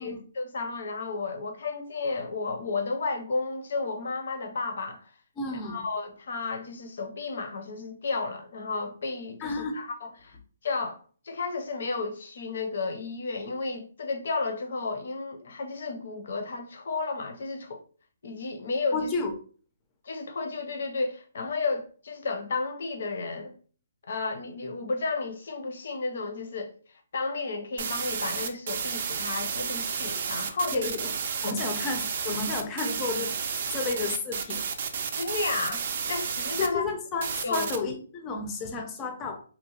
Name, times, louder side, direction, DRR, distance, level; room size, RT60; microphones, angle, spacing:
voice 1, 0.0-5.1 5.5-10.4 10.6-17.8 18.2-19.1 20.0-23.5 24.1-26.7 27.1-30.9 31.4-31.6 35.2-36.9 37.4-37.7, left 3 dB, 65° left, 0.6 m, -32 dB
voice 2, 5.4-5.8 9.4-9.8 18.9-19.3 30.7-31.1 31.4-33.4 33.7-34.7 36.6-39.4, left 4 dB, 20° left, 0.5 m, -32 dB
sound 1, 27.8-36.7 37.2-37.8, right 6 dB, 50° right, 0.4 m, -31 dB
2.8 x 2.0 x 2.8 m
hypercardioid pair, 155°, 0 cm